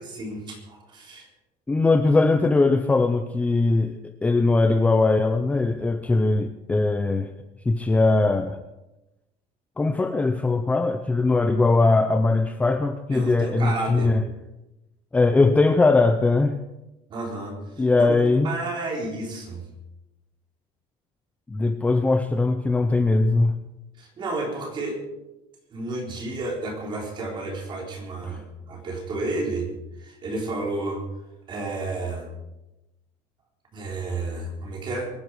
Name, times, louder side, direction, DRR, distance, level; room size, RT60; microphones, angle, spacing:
voice 1, 0.1-1.3 13.1-14.1 17.1-18.2 18.4-19.6 24.0-25.0 25.7-29.7 30.0-31.0 31.5-32.3 33.7-35.1, right 2 dB, 30° right, 0 dB, 3.9 m, -31 dB
voice 2, 1.7-7.3 7.7-8.6 9.8-14.2 15.1-16.6 17.8-18.5 21.5-23.5, left 3 dB, 10° left, 7 dB, 0.6 m, -20 dB
24.0 x 10.0 x 4.8 m, 0.97 s
cardioid pair, 180°, 16 cm